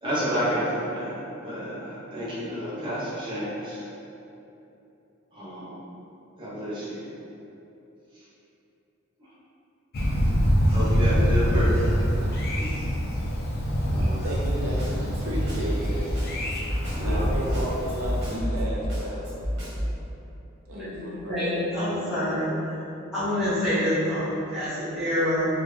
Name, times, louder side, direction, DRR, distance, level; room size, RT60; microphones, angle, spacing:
voice 1, 0.0-3.8 5.3-5.8 6.4-7.0 9.2-9.3 10.7-12.2 12.6-12.7 13.8-14.2 16.9-17.3, equal, 25° right, -9 dB, 0.8 m, -30 dB
Thunder, 9.9-18.4, equal, 45° left, 0.4 m, -25 dB
voice 2, 14.0-16.1 17.0-19.3 20.7-21.7, right 1 dB, 80° right, -3 dB, 0.5 m, -34 dB
Snare drum, 14.4-20.0, equal, 55° right, 1.3 m, -29 dB
voice 3, 20.7-21.0 21.3-22.6 23.1-25.5, left 1 dB, 5° right, -15 dB, 1.2 m, -26 dB
3.6 x 2.3 x 3.1 m, 2.9 s
head